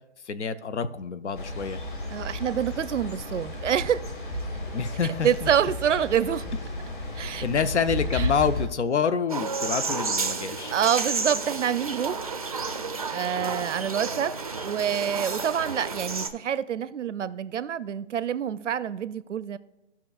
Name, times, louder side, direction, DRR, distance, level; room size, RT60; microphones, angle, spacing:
voice 1, 0.3-1.8 4.7-5.5 7.4-10.8, left 6 dB, 70° left, 0.7 m, -27 dB
sound 1, 1.3-8.7, left 1 dB, 45° left, 1.7 m, -33 dB
voice 2, 2.1-4.0 5.2-6.5 7.1-7.4 8.1-8.3 10.7-12.2 13.1-19.6, right 9 dB, 75° right, 0.6 m, -27 dB
sound 2, 9.3-16.3, right 4 dB, 30° right, 0.5 m, -31 dB
17.0 x 5.8 x 2.4 m
hypercardioid pair, 170°, 36 cm